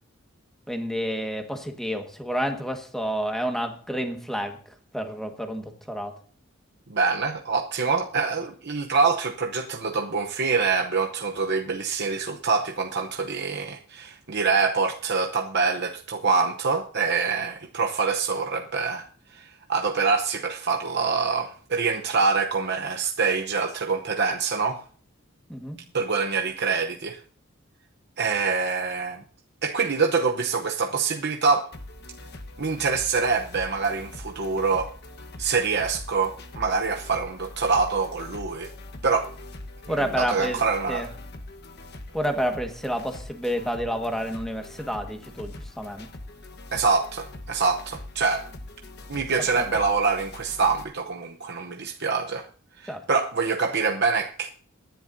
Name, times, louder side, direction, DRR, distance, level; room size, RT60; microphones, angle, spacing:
voice 1, 0.7-4.6 4.9-6.2 25.5-25.8 39.9-40.6 40.9-41.1 42.1-46.1 49.4-49.7 52.9-53.0, equal, ahead, 1.6 m, -29 dB
voice 2, 6.9-19.1 19.3-24.8 25.9-27.2 28.2-29.2 29.6-31.7 32.6-34.9 35.4-38.7 39.0-39.3 39.9-41.1 46.7-48.5 49.1-52.5 52.8-54.5, right 4 dB, 50° right, 0.9 m, -25 dB
sound 1, 31.7-50.8, left 2 dB, 50° left, 1.2 m, -42 dB
23.0 x 10.5 x 2.7 m
head